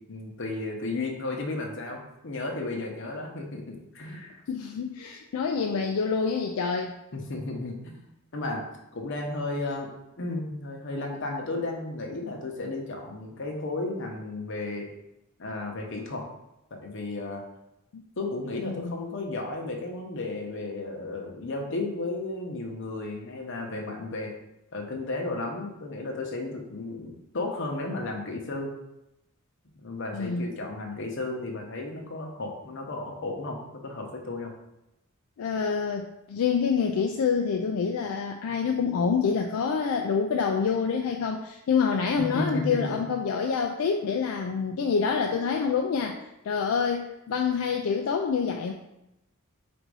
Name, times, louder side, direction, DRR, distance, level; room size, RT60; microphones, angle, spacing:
voice 1, 0.1-4.4 7.1-8.0 8.3-8.6 8.9-9.9 10.2-14.9 15.4-16.3 16.7-17.4 18.2-24.3 24.7-28.7 29.8-34.5 42.3-43.0, left 2 dB, 60° left, 1 dB, 0.8 m, -33 dB
voice 2, 4.5-6.9 17.9-18.0 18.6-19.0 30.1-30.5 35.4-46.2 46.4-48.7, left 6 dB, 80° left, 2 dB, 0.4 m, -27 dB
4.0 x 2.6 x 4.7 m, 0.89 s
head